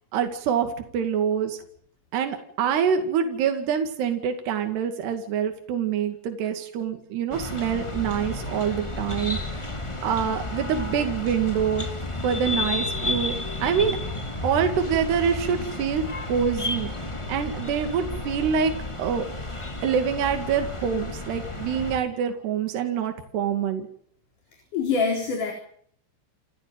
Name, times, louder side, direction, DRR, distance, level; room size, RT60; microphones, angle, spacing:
voice 1, 0.1-1.6 2.1-9.7 10.0-11.9 12.2-14.0 14.4-18.7 19.0-19.3 19.8-23.9, right 7 dB, 65° right, 6 dB, 4.3 m, -26 dB
sound 1, 7.3-22.0, left 2 dB, 20° left, 0.8 m, -32 dB
voice 2, 24.7-25.5, left 5 dB, 45° left, 3 dB, 5.3 m, -24 dB
29.0 x 14.5 x 9.3 m, 0.62 s
omnidirectional pair, 5.2 m